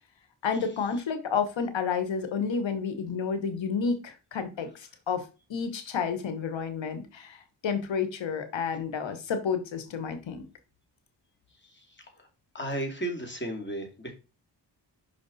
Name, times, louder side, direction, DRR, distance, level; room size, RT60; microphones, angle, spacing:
voice 1, 0.4-10.4, left 6 dB, 85° left, 9 dB, 1.2 m, -30 dB
voice 2, 11.7-12.3 12.5-14.1, right 1 dB, 25° left, 2 dB, 2.6 m, -35 dB
5.8 x 5.1 x 4.1 m, 0.30 s
cardioid pair, 55°, 44 cm